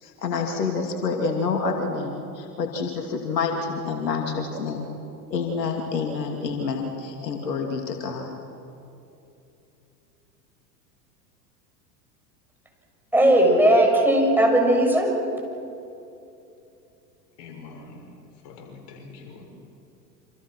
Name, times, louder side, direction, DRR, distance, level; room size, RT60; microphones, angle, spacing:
voice 1, 0.0-4.9 5.3-8.3, left 4 dB, 75° left, 2.8 m, -28 dB
voice 2, 13.1-15.1, right 1 dB, 5° right, 7.1 m, -17 dB
voice 3, 17.4-18.1 18.4-19.6, left 4 dB, 55° left, 7.0 m, -44 dB
28.5 x 26.5 x 6.2 m
hypercardioid pair, 85°, 49 cm